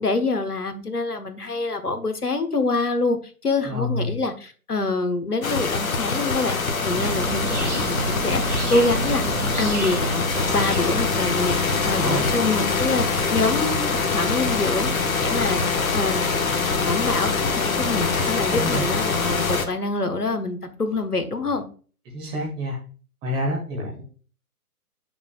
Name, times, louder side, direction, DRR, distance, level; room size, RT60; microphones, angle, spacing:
voice 1, 0.0-3.2 3.4-9.2 9.6-13.1 13.3-14.9 15.2-16.3 16.7-21.6, left 3 dB, 85° left, 7 dB, 1.4 m, -26 dB
voice 2, 3.6-4.1 12.0-12.4 18.5-18.8 22.0-22.8 23.2-24.0, equal, 10° right, -1 dB, 1.1 m, -28 dB
sound 1, 5.4-19.7, left 4 dB, 65° left, 1.2 m, -24 dB
sound 2, 6.9-11.8, right 2 dB, 50° right, 2.8 m, -30 dB
8.0 x 5.9 x 2.3 m, 0.39 s
figure-of-eight pair, 130°, 45 cm